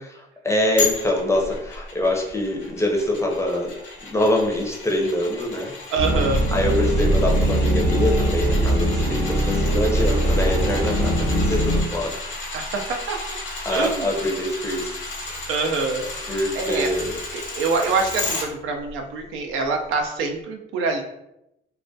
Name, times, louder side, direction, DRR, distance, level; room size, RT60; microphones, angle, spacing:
voice 1, 0.2-3.7 4.0-5.7 6.5-12.1 13.6-15.0 15.3-15.4 16.3-17.1, left 1 dB, 15° left, -1 dB, 0.5 m, -24 dB
sound 1, 0.8-18.4 18.9-19.0, left 3 dB, 70° left, 0.7 m, -33 dB
voice 2, 5.9-6.5 12.5-13.2 13.7-14.1 15.5-16.9 17.3-21.0, right 4 dB, 85° right, 3 dB, 0.4 m, -25 dB
sound 2, 6.0-11.8, right 1 dB, 50° right, 0.7 m, -21 dB
2.3 x 2.1 x 2.6 m, 0.83 s
cardioid pair, 90°, 20 cm